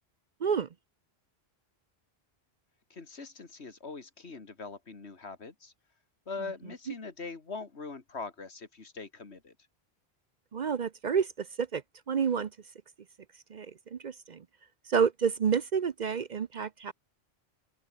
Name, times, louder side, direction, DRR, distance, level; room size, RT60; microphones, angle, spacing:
voice 1, 2.9-5.7 6.3-9.6, left 4 dB, 80° left, 2.5 m, -42 dB
voice 2, 10.5-11.8 12.1-12.5 13.5-14.4 14.9-16.9, right 6 dB, 50° right, 0.7 m, -29 dB
open air
omnidirectional pair, 1.1 m